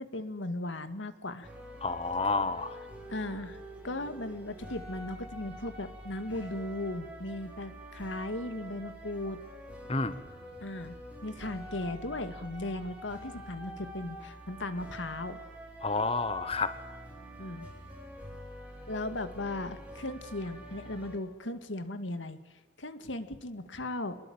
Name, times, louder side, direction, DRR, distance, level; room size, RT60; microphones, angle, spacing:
voice 1, 0.0-1.5 3.1-3.6 3.8-9.4 10.6-11.0 11.2-15.4 17.4-17.7 18.9-22.4 22.8-24.2, left 1 dB, 90° left, 10 dB, 2.2 m, -37 dB
sound 1, 1.4-21.2, equal, 5° right, 6.0 m, -46 dB
voice 2, 1.8-2.7 9.9-10.1 15.8-16.7, left 3 dB, 30° left, 11 dB, 1.2 m, -29 dB
25.0 x 21.5 x 8.9 m, 1.2 s
head